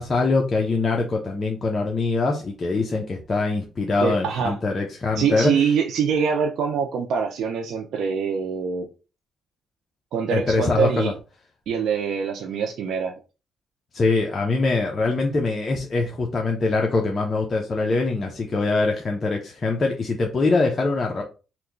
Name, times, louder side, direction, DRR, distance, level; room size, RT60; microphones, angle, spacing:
voice 1, 0.0-5.5 10.3-11.1 13.9-21.2, left 3 dB, 35° left, 0.6 m, -23 dB
voice 2, 4.0-4.6 5.2-8.9 10.1-11.1 11.7-13.1, right 6 dB, 75° right, 0.4 m, -24 dB
2.9 x 2.2 x 3.7 m
cardioid pair, 90°, 0 cm